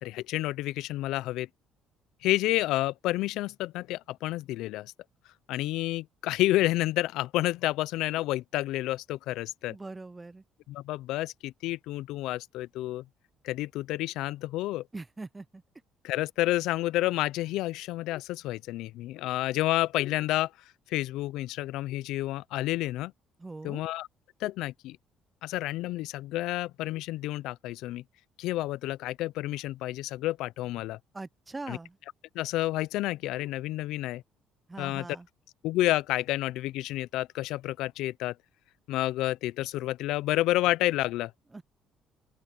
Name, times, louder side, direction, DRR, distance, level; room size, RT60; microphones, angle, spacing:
voice 1, 0.0-1.5 2.2-4.9 5.5-9.8 10.7-13.0 13.4-14.9 16.0-20.5 20.9-23.1 23.6-24.1 24.4-25.0 25.4-28.0 28.4-31.0 31.7-31.8 32.3-34.2 34.8-35.1 35.6-38.4 38.9-41.3, left 16 dB, 80° left, 0.4 m, -30 dB
voice 2, 9.7-10.4 14.9-15.6 23.4-23.8 31.1-32.0 34.7-35.3 41.5-41.6, right 3 dB, 20° right, 0.4 m, -41 dB
cardioid pair, 85°, 0 cm